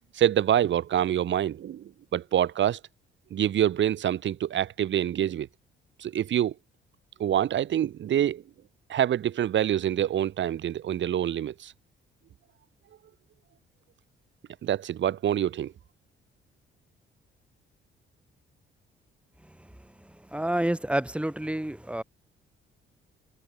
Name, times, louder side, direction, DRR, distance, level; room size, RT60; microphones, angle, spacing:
voice 1, 0.1-2.8 3.3-5.5 6.0-6.5 7.2-8.4 8.9-11.7 14.6-15.7, right 10 dB, 70° right, 5.6 m, -26 dB
voice 2, 20.3-22.0, right 1 dB, 5° right, 5.4 m, -28 dB
cardioid pair, 90°, 20 cm